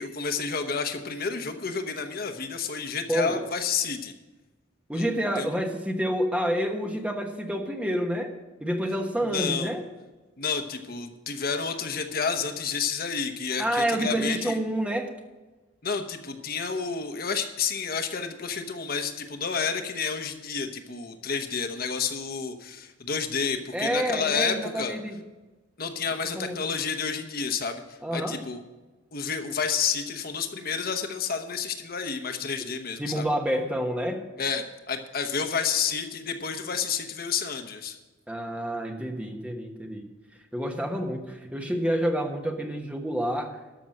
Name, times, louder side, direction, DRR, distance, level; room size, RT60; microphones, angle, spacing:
voice 1, 0.0-4.1 4.9-5.1 5.4-5.5 9.3-9.7 10.4-14.6 15.8-24.9 25.8-27.8 28.1-28.6 29.1-33.2 34.4-38.0, left 6 dB, 50° left, 7 dB, 1.0 m, -30 dB
voice 2, 3.1-3.4 4.9-8.3 8.6-9.8 13.6-15.1 23.7-25.2 26.3-26.7 28.0-28.4 32.6-32.7 33.0-34.2 38.3-40.1 40.5-43.6, equal, 5° right, 3 dB, 1.2 m, -28 dB
13.0 x 6.1 x 7.6 m, 1.2 s
head